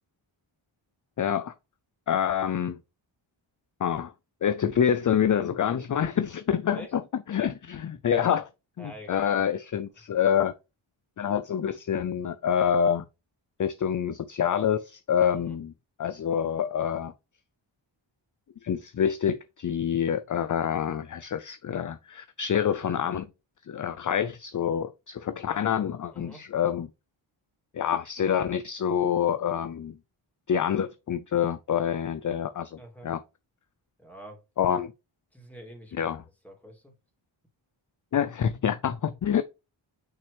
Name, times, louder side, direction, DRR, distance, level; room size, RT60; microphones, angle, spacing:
voice 1, 1.2-1.5 2.1-2.8 3.8-4.1 4.4-7.0 7.3-8.5 8.8-10.5 11.2-13.0 13.6-15.7 16.0-17.1 18.6-23.3 23.7-26.9 27.7-30.0 30.5-33.2 34.6-34.9 35.9-36.2 38.1-39.4, left 8 dB, 40° left, 0.5 m, -27 dB
voice 2, 8.8-9.5 15.3-15.6 26.1-26.4 32.8-33.1 34.0-34.4 35.3-36.9, right 1 dB, 5° left, 3.0 m, -46 dB
6.1 x 5.8 x 3.3 m
wide cardioid pair, 85°, 50 cm